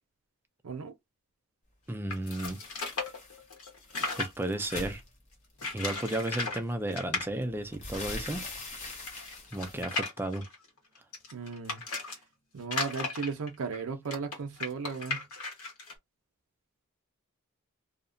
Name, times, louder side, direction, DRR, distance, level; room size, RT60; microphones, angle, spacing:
voice 1, 0.6-0.9 11.3-11.8 12.5-15.3, right 5 dB, 75° right, 0.5 m, -36 dB
voice 2, 1.9-2.6 4.2-5.0 5.7-8.5 9.5-10.5, right 1 dB, 10° right, 0.3 m, -33 dB
sound 1, 2.1-5.0 5.6-6.6 6.9-7.3 7.9-8.0 8.2-8.3 8.9-12.2 12.6-15.9, left 3 dB, 80° left, 1.1 m, -36 dB
sound 2, 2.4-3.4 3.7-5.7 6.6-6.7 7.1-9.8, left 2 dB, 30° left, 0.7 m, -43 dB
2.8 x 2.1 x 2.5 m
head